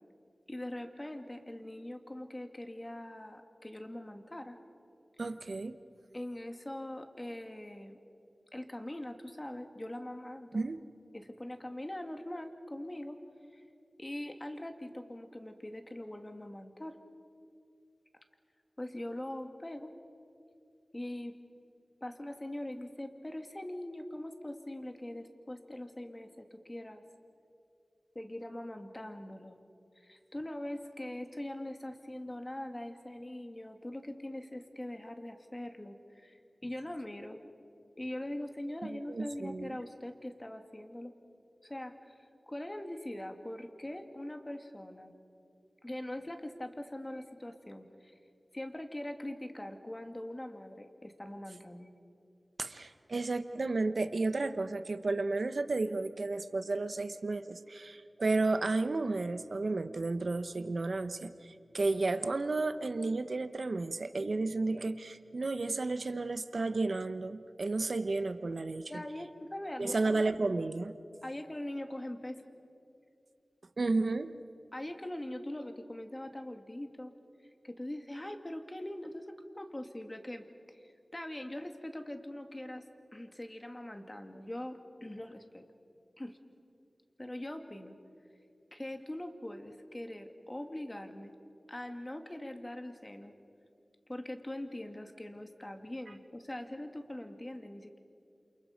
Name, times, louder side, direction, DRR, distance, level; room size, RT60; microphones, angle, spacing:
voice 1, 0.5-4.6 6.1-8.0 8.5-10.7 11.1-13.2 13.5-13.6 14.0-17.0 18.8-19.9 20.9-21.3 22.0-27.0 28.2-29.6 30.0-37.5 38.0-41.1 41.6-45.1 45.8-48.2 48.5-51.9 68.9-70.2 71.2-72.4 74.7-77.1 77.6-82.8 83.1-85.6 86.2-86.4 87.2-88.0 88.7-91.3 91.7-93.3 94.1-98.0, left 1 dB, 25° left, 5 dB, 2.1 m, -42 dB
voice 2, 5.2-5.8 10.5-10.8 38.8-39.8 52.6-68.9 69.8-71.0 73.8-74.3, right 3 dB, 70° right, 10 dB, 0.9 m, -32 dB
28.5 x 28.5 x 5.2 m, 2.5 s
wide cardioid pair, 55°, 0 cm